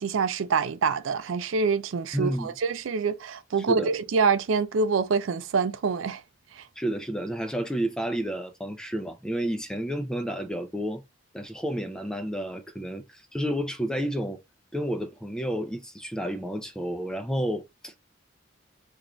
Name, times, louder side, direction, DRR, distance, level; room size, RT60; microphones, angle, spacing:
voice 1, 0.0-6.2 6.5-6.7, right 5 dB, 75° right, 0.4 m, -26 dB
voice 2, 2.1-2.5 3.7-3.9 6.8-11.0 11.3-14.4 14.7-17.9, equal, 5° left, 0.4 m, -30 dB
3.6 x 2.4 x 3.0 m
head